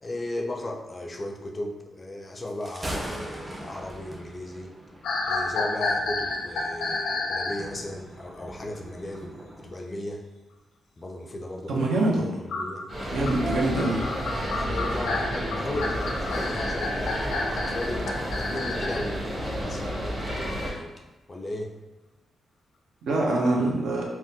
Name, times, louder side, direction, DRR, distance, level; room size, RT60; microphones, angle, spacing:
voice 1, 0.0-4.7 5.3-9.4 9.6-10.2 11.0-11.9 12.4-12.9 14.5-20.9 21.3-21.8, left 1 dB, 30° left, 2 dB, 0.4 m, -36 dB
Thunder, 2.5-9.7, right 1 dB, 20° right, 0.5 m, -41 dB
sound 1, 5.0-7.6 12.5-19.1, left 3 dB, 90° left, 0.5 m, -30 dB
voice 2, 11.7-12.4 13.1-14.0 23.0-24.0, right 2 dB, 80° right, -1 dB, 0.6 m, -24 dB
sound 2, 12.9-20.7, equal, 40° right, 1.2 m, -31 dB
3.5 x 2.1 x 2.7 m, 1.1 s
cardioid pair, 75°, 0 cm